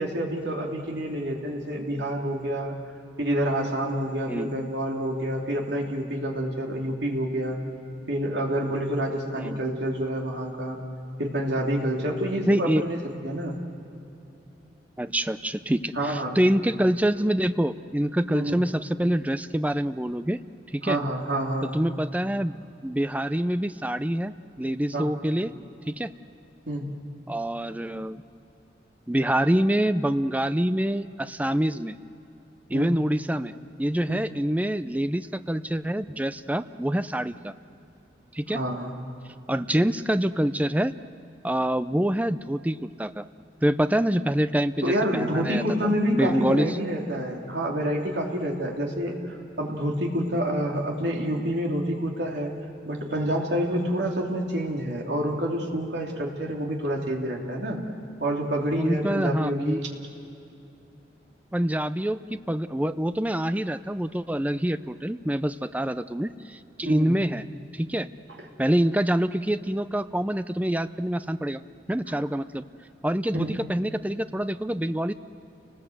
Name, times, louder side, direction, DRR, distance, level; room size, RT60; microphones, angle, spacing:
voice 1, 0.0-2.7 3.2-7.6 8.1-10.8 11.2-13.5 15.9-16.4 18.3-18.6 20.8-21.7 24.9-25.1 26.7-26.9 32.7-33.0 34.1-34.2 38.5-38.9 44.8-52.5 52.9-57.8 58.2-59.9 66.8-67.1 68.4-68.5 73.3-73.5, equal, 70° right, 0 dB, 3.1 m, -28 dB
voice 2, 12.5-12.8 15.0-20.4 20.7-21.0 21.6-22.5 22.8-25.5 25.9-26.1 27.3-28.2 29.1-32.0 32.7-37.5 38.3-38.6 39.5-40.9 41.4-43.2 43.6-45.6 46.1-46.8 58.8-59.8 61.5-67.4 67.7-68.1 68.6-71.6 71.9-72.6 73.0-75.1, right 1 dB, 10° right, 12 dB, 0.5 m, -26 dB
29.5 x 19.5 x 7.9 m, 2.8 s
head